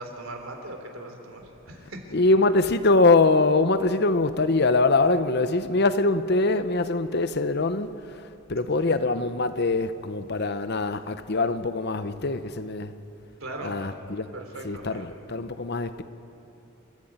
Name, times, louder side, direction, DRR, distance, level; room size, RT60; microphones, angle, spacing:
voice 1, 0.0-2.0 13.4-13.9 14.3-15.1, right 2 dB, 75° right, 3.6 m, -39 dB
voice 2, 2.1-12.9 13.6-14.3 14.6-16.0, left 3 dB, 50° left, 0.9 m, -23 dB
28.5 x 14.5 x 8.9 m
head